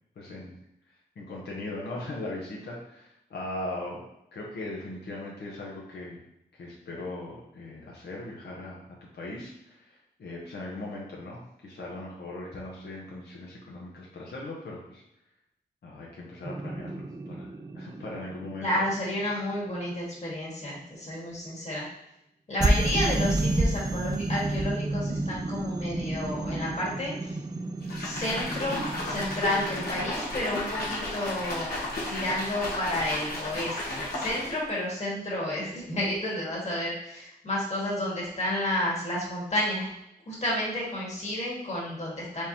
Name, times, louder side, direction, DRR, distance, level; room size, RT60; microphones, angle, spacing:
voice 1, 0.2-0.6 1.2-4.0 4.3-6.2 6.5-8.8 9.1-15.0 15.8-17.5 17.7-18.7, left 2 dB, 85° left, -4 dB, 0.9 m, -39 dB
sound 1, 16.4-19.5 22.6-29.9, right 2 dB, 25° right, 0.4 m, -30 dB
voice 2, 18.6-21.9 22.5-27.4 28.0-31.8 32.1-39.9 40.3-42.5, left 1 dB, 45° left, -4 dB, 1.7 m, -31 dB
sound 2, 27.8-34.7, left 1 dB, 70° left, 1.3 m, -33 dB
4.6 x 3.6 x 2.9 m, 0.80 s
wide cardioid pair, 110°, 17 cm